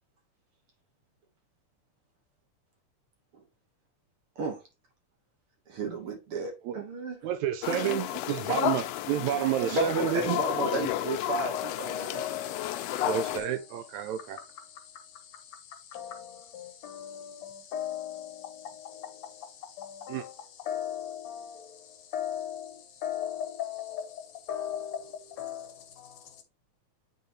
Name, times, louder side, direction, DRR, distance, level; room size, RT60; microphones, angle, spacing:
voice 1, 5.7-7.2 7.7-8.0 9.7-12.2, right 2 dB, 55° right, 1.8 m, -33 dB
voice 2, 7.2-10.4 13.0-14.4 20.1-20.2, right 11 dB, 80° right, 1.8 m, -30 dB
sound 1, 7.6-13.4, left 13 dB, 85° left, 1.4 m, -32 dB
voice 3, 11.5-26.4, left 10 dB, 70° left, 2.0 m, -39 dB
9.1 x 4.0 x 2.7 m
omnidirectional pair, 3.5 m